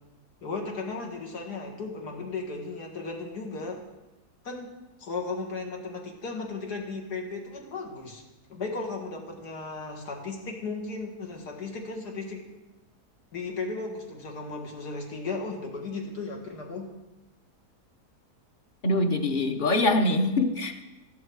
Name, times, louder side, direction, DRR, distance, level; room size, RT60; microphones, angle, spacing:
voice 1, 0.4-3.8 4.4-4.7 5.0-8.2 8.5-12.5 13.3-16.9, left 3 dB, 85° left, 1 dB, 2.4 m, -35 dB
voice 2, 18.8-20.9, left 2 dB, 40° left, 7 dB, 0.8 m, -24 dB
13.5 x 11.0 x 4.7 m, 1.0 s
omnidirectional pair, 1.7 m